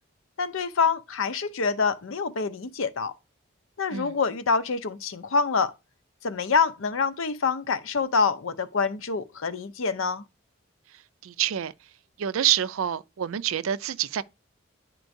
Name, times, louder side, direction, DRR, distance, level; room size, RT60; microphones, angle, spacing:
voice 1, 0.4-3.1 3.8-5.7 6.2-10.2, left 5 dB, 75° left, 0.6 m, -26 dB
voice 2, 11.2-11.7 12.2-14.2, right 10 dB, 75° right, 0.4 m, -27 dB
10.5 x 4.5 x 2.6 m
head